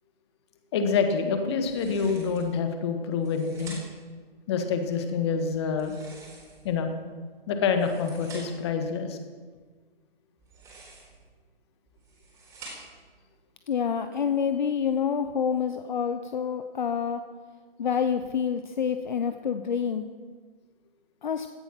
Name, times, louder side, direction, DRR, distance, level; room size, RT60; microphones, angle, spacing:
voice 1, 0.7-3.8 4.5-6.0 6.6-6.9 7.5-9.2, left 5 dB, 25° left, 6 dB, 1.8 m, -27 dB
sound 1, 1.6-2.5 3.1-4.1 5.7-6.8 7.6-8.7 10.4-11.2 11.9-13.1, right 2 dB, 10° right, 4.0 m, -47 dB
voice 2, 13.7-17.2 17.8-20.0 21.2-21.5, left 7 dB, 50° left, 8 dB, 1.0 m, -27 dB
17.0 x 13.5 x 6.0 m, 1.5 s
hypercardioid pair, 155°, 30 cm